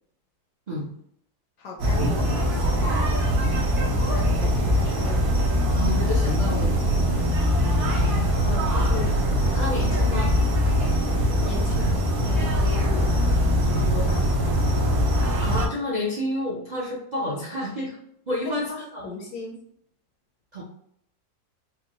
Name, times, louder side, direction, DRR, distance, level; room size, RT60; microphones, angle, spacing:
voice 1, 1.6-3.2 3.7-5.4 7.5-7.6 11.4-13.3 13.6-14.3 18.4-19.6, left 2 dB, 65° left, 0 dB, 0.9 m, -37 dB
sound 1, 1.8-15.7, equal, 65° right, 1.4 m, -22 dB
voice 2, 5.7-7.4 8.0-9.1 9.5-10.3 15.4-18.0 18.3-19.1 20.5-20.6, left 1 dB, 45° right, -5 dB, 0.5 m, -30 dB
4.6 x 2.2 x 2.9 m, 0.71 s
omnidirectional pair, 1.8 m